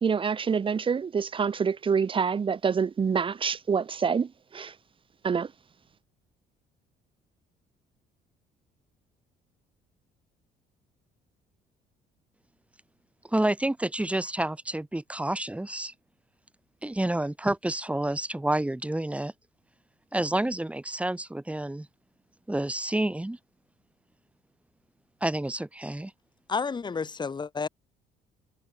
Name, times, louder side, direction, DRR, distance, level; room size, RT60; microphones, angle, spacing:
voice 1, 0.0-4.7 5.2-5.5, right 6 dB, 30° right, 1.3 m, -26 dB
voice 2, 13.3-15.9 16.8-19.3 20.1-21.9 22.5-23.4 25.2-26.1, right 1 dB, 5° right, 2.3 m, -29 dB
voice 3, 26.5-27.7, left 5 dB, 25° left, 2.5 m, -30 dB
cardioid pair, 110°, 17 cm